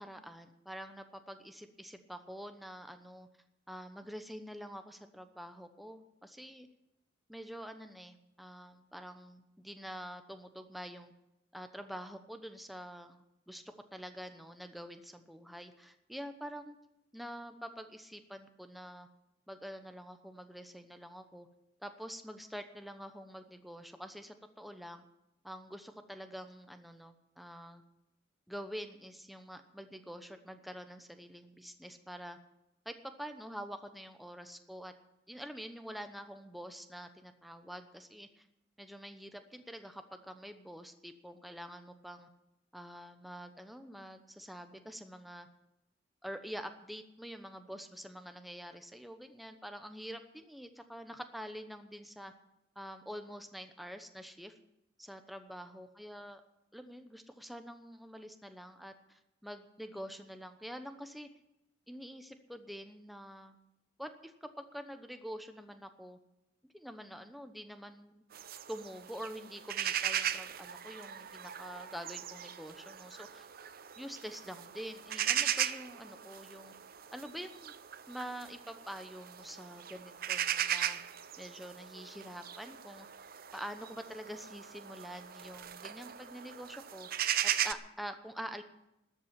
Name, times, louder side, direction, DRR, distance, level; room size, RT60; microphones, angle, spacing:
voice 1, 0.0-3.3 3.7-6.7 7.3-11.1 11.5-16.8 17.1-19.1 19.5-21.5 21.8-25.0 25.4-27.8 28.5-32.4 32.8-34.9 35.3-38.5 38.8-42.3 42.7-45.5 46.2-52.3 52.8-54.5 55.0-56.4 56.7-61.3 61.9-63.6 64.0-66.2 66.7-68.2 68.7-73.5 74.0-76.7 77.1-77.8 78.1-81.0 81.4-83.1 83.5-87.1 87.4-88.6, equal, ahead, 7 dB, 0.9 m, -46 dB
sound 1, 68.3-87.7, right 10 dB, 55° right, 0.6 m, -38 dB
13.0 x 8.1 x 9.9 m, 0.85 s
head